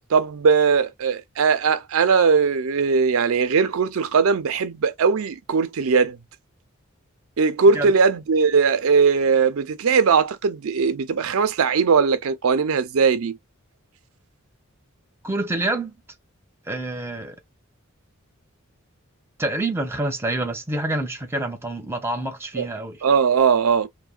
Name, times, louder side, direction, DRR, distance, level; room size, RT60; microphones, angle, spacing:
voice 1, 0.1-6.2 7.4-13.4 22.6-22.7 23.0-23.9, right 5 dB, 80° right, 0.5 m, -19 dB
voice 2, 15.2-16.0 16.7-17.4 19.4-23.0, right 2 dB, 10° right, 0.6 m, -27 dB
3.3 x 2.2 x 2.2 m
head